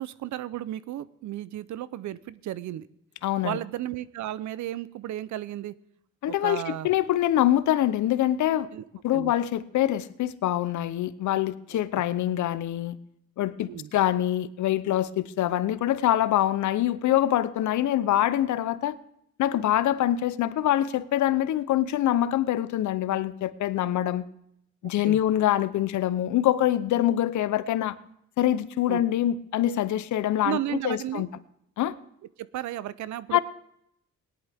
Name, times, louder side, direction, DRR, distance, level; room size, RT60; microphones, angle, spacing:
voice 1, 0.0-2.9 3.4-5.7 6.3-6.9 8.7-8.8 9.1-9.3 11.7-11.8 13.7-13.9 25.0-25.2 28.9-29.0 30.4-31.3 32.4-33.4, right 12 dB, 70° right, 18 dB, 0.6 m, -33 dB
voice 2, 3.2-3.6 6.2-8.7 9.0-13.0 13.4-19.0 19.4-24.2 24.8-28.0 28.4-30.6 30.8-31.3 31.8-31.9 33.3-33.4, left 12 dB, 75° left, 15 dB, 0.8 m, -25 dB
18.0 x 11.0 x 3.5 m, 0.75 s
cardioid pair, 90°, 30 cm